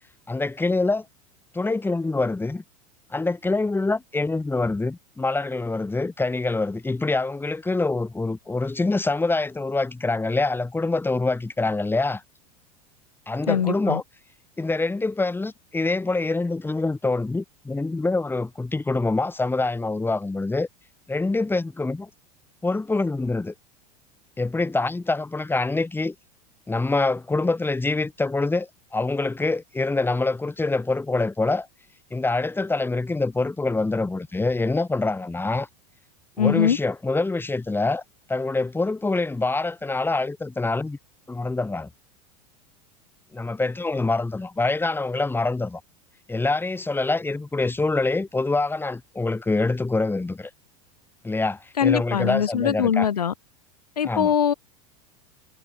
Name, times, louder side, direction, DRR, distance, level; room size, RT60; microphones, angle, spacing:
voice 1, 0.3-1.0 1.5-2.6 3.1-12.2 13.3-14.0 14.6-20.7 21.1-22.1 22.6-23.5 24.4-26.1 26.7-31.7 32.1-35.7 36.4-38.0 38.3-41.0 41.3-41.9 43.3-45.8 46.3-50.5 51.2-53.1 54.0-54.3, left 3 dB, 10° left, 4.7 m, -25 dB
voice 2, 13.5-14.0 36.4-36.8 51.8-53.3 54.0-54.5, left 8 dB, 85° left, 4.7 m, -22 dB
hypercardioid pair, 85°, 20 cm